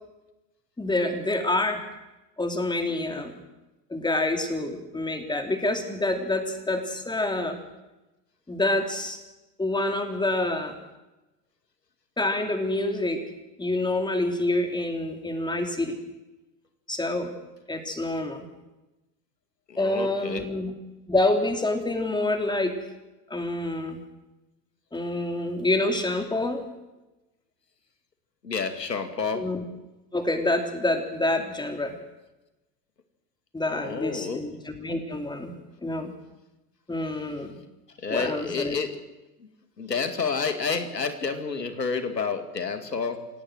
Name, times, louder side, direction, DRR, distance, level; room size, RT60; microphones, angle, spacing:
voice 1, 0.8-1.8 2.4-3.4 3.9-7.6 8.5-9.2 9.6-10.7 12.2-13.2 13.6-16.0 16.9-17.3 17.7-18.5 19.8-20.7 21.1-22.7 23.3-24.0 24.9-26.6 29.3-29.6 30.1-31.9 33.5-35.5 35.8-36.1 36.9-37.5 38.1-38.8, left 2 dB, 10° left, 5 dB, 3.8 m, -27 dB
voice 2, 19.7-20.5 28.4-29.5 33.7-34.5 38.0-39.0 39.4-39.5 39.8-43.3, left 5 dB, 85° left, 8 dB, 2.5 m, -29 dB
27.5 x 17.5 x 6.4 m, 1.0 s
figure-of-eight pair, 80°, 48 cm